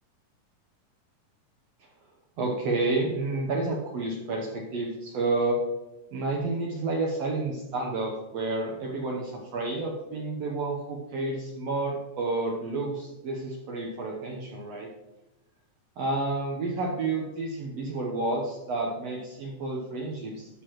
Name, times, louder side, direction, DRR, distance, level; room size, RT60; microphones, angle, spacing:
voice 1, 2.4-5.6 6.1-14.9 16.0-20.6, right 2 dB, 65° right, -1 dB, 1.7 m, -30 dB
11.5 x 6.9 x 3.0 m, 1.0 s
omnidirectional pair, 3.8 m